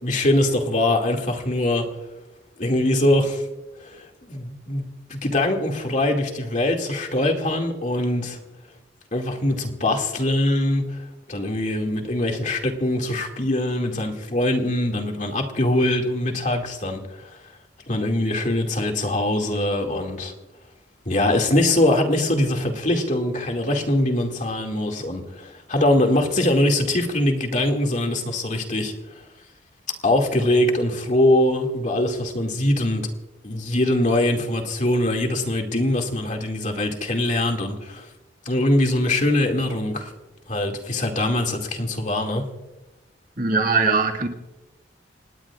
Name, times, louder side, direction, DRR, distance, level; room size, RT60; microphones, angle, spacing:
voice 1, 0.0-1.9 2.6-3.4 3.8-8.4 9.1-11.0 11.3-17.4 17.9-20.3 21.1-28.9 30.0-33.1 33.4-38.1 38.5-40.1 40.5-42.4, left 1 dB, 40° left, 3 dB, 2.3 m, -22 dB
voice 2, 43.4-44.3, right 4 dB, 50° right, 3 dB, 2.0 m, -20 dB
27.5 x 18.5 x 2.5 m, 1.0 s
head